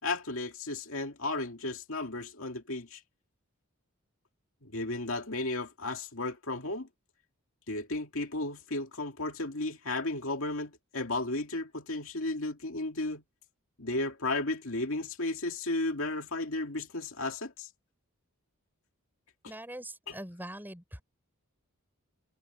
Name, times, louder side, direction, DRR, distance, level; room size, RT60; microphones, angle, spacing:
voice 1, 0.0-3.0 4.6-6.9 7.7-13.2 13.8-17.7 19.4-19.5 20.1-20.2, left 2 dB, 60° left, 2.5 m, -34 dB
voice 2, 19.5-21.0, right 1 dB, 10° right, 6.2 m, -43 dB
head